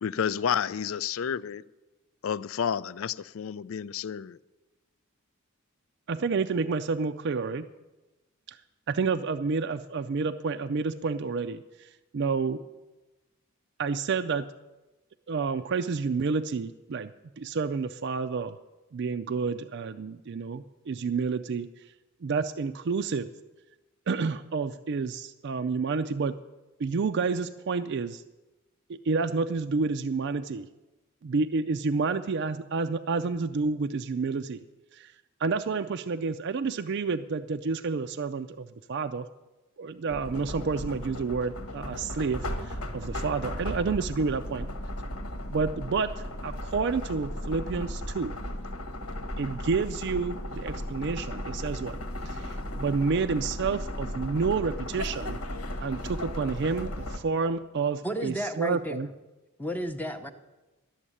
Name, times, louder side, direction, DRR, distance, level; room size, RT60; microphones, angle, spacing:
voice 1, 0.0-1.6 2.2-4.4, left 8 dB, 65° left, 17 dB, 0.4 m, -30 dB
voice 2, 6.1-7.7 8.5-8.6 8.9-12.6 13.8-14.5 15.3-17.1 17.4-18.6 18.9-21.7 22.2-23.3 24.1-26.3 26.8-28.2 28.9-30.7 31.2-34.6 34.9-35.1 35.4-39.3 39.8-44.7 45.5-46.1 46.4-48.4 49.4-52.0 52.3-55.4 55.8-59.1, right 4 dB, 50° right, 8 dB, 0.4 m, -29 dB
sound 1, 40.1-57.2, left 1 dB, 85° left, 1.4 m, -36 dB
voice 3, 58.0-59.1 59.6-60.3, equal, 10° left, 7 dB, 0.7 m, -32 dB
12.5 x 7.2 x 9.9 m, 1.1 s
head